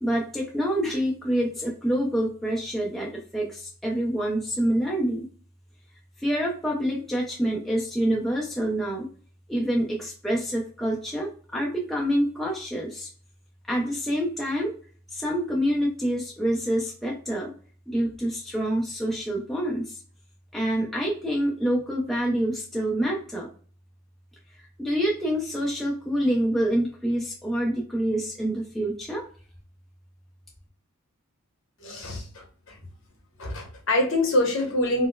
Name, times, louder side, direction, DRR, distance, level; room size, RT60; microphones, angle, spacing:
voice 1, 0.0-5.3 6.2-9.1 9.5-13.1 13.7-14.7 15.1-17.5 17.9-20.0 20.5-23.5 24.8-29.2, equal, ahead, -3 dB, 0.5 m, -27 dB
voice 2, 31.8-32.8 33.4-35.1, left 1 dB, 60° left, 1 dB, 1.0 m, -25 dB
4.2 x 2.0 x 2.3 m, 0.43 s
head